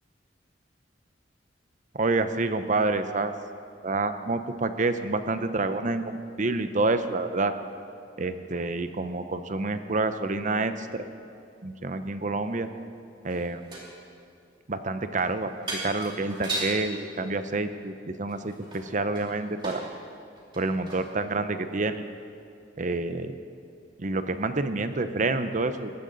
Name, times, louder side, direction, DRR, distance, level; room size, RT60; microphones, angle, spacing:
voice 1, 1.9-3.3 3.8-7.5 8.2-11.0 11.6-12.7 13.2-13.6 14.7-15.5 15.8-19.8 20.6-22.0 22.8-23.3 24.0-25.9, right 3 dB, 40° right, 10 dB, 0.8 m, -28 dB
sound 1, 13.3-14.0 15.2-15.3 15.6-16.8 18.3-19.9 20.4-21.1 21.7-21.8, right 2 dB, 25° right, 3.1 m, -36 dB
20.0 x 15.5 x 4.0 m, 2.5 s
head